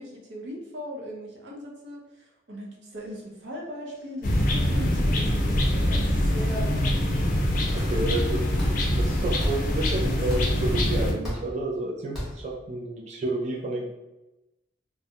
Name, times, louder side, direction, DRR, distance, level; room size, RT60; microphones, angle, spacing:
voice 1, 0.0-6.7 7.8-8.2, equal, 90° right, -1 dB, 0.6 m, -39 dB
sound 1, 2.9-3.2 3.5-3.6 3.9-4.5 4.8-5.0 5.6-6.2 6.5-7.1 7.8-8.2 8.6-9.1 9.4-9.9 10.3-10.8 11.2-11.7 12.1-12.6, equal, ahead, 0.8 m, -38 dB
sound 2, 4.2-11.1, left 1 dB, 50° left, 0.4 m, -24 dB
voice 2, 7.7-8.4 9.0-13.9, right 2 dB, 40° right, -3 dB, 0.3 m, -30 dB
2.2 x 2.0 x 2.7 m, 0.99 s
head